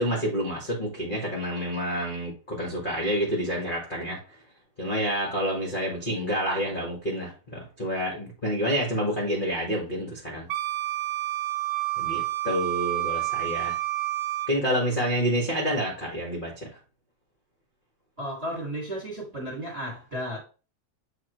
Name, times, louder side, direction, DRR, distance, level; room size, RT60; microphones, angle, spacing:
voice 1, 0.0-4.2 4.8-10.4 12.0-13.7 14.5-16.5, equal, 30° left, 1.0 m, -28 dB
Wind instrument woodwind instrument, 10.5-14.6, right 17 dB, 85° right, 2.0 m, -29 dB
voice 2, 18.2-20.4, equal, 25° right, 1.5 m, -34 dB
7.7 x 4.0 x 3.0 m
omnidirectional pair, 3.5 m